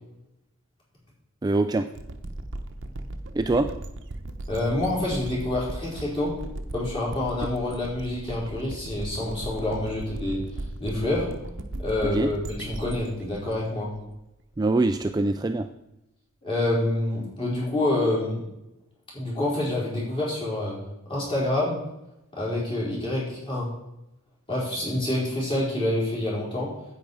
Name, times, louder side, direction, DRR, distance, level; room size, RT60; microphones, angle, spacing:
voice 1, 1.4-1.9 3.3-3.7 12.1-12.3 14.6-15.7, right 2 dB, 20° right, 8 dB, 0.3 m, -23 dB
sound 1, 1.9-14.6, right 1 dB, 55° right, 0.8 m, -37 dB
voice 2, 4.5-6.3 6.7-10.4 10.8-11.3 11.8-13.9 16.4-18.4 19.1-20.8 21.1-21.8 22.3-23.7 24.5-26.7, left 1 dB, 25° left, -6 dB, 4.2 m, -27 dB
9.4 x 8.4 x 4.7 m, 0.90 s
head